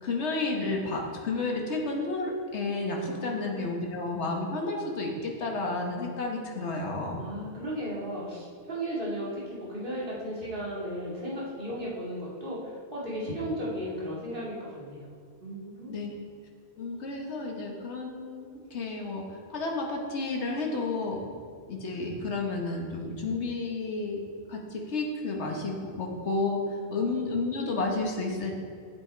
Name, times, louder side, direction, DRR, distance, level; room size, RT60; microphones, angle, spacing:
voice 1, 0.0-7.2 15.9-16.1 16.8-21.2 21.7-24.2 24.5-26.6 26.9-28.5, left 3 dB, 80° left, 0 dB, 1.5 m, -31 dB
voice 2, 3.0-3.9 7.2-15.1 15.4-16.0 19.0-19.1 26.8-27.0, equal, 50° right, -7 dB, 2.5 m, -35 dB
8.6 x 7.8 x 4.5 m, 2.2 s
omnidirectional pair, 1.1 m